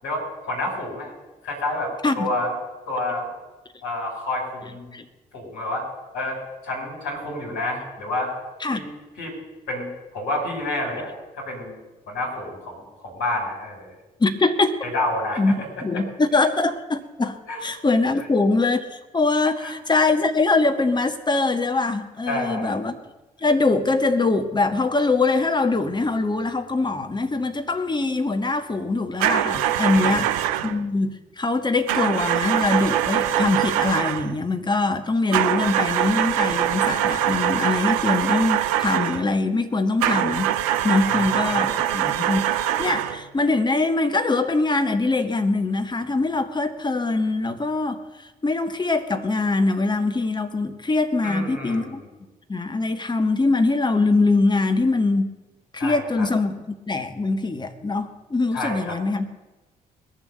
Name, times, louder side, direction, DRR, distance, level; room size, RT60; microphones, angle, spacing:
voice 1, 0.0-1.1 1.4-2.6 2.9-3.4 3.8-5.0 5.3-5.9 6.1-8.3 8.7-8.9 9.2-9.3 9.7-9.9 10.1-11.1 11.4-11.8 12.1-14.0 14.9-15.4 17.5-17.6 19.6-19.7 22.3-22.8 29.9-30.4 41.0-41.7 51.2-52.0 55.8-56.3 58.5-59.0, left 1 dB, 65° left, -2 dB, 5.3 m, -29 dB
voice 2, 14.2-14.9 15.4-15.5 15.8-23.0 23.4-40.5 40.8-52.0 52.5-55.3 55.7-59.2, left 3 dB, 20° left, 7 dB, 1.5 m, -23 dB
sound 1, 29.2-30.8 31.9-34.3 35.3-39.3 40.0-43.2, right 11 dB, 70° right, 0.6 m, -23 dB
20.5 x 7.3 x 6.5 m, 1.1 s
figure-of-eight pair, 40°, 19 cm